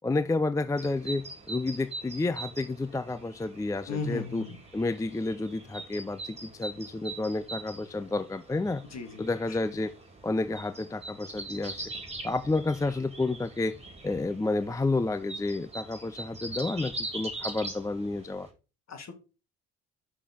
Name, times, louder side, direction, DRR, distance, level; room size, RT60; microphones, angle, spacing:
voice 1, 0.0-4.5 4.7-8.8 9.2-9.9 10.2-11.9 12.2-13.8 14.0-18.5, left 2 dB, 10° left, 0.5 m, -30 dB
sound 1, 0.7-18.5, right 2 dB, 15° right, 3.2 m, -42 dB
voice 2, 3.9-4.6 8.9-9.3 18.9-19.1, left 3 dB, 45° left, 2.1 m, -35 dB
6.1 x 5.8 x 5.2 m
hypercardioid pair, 55°, 36 cm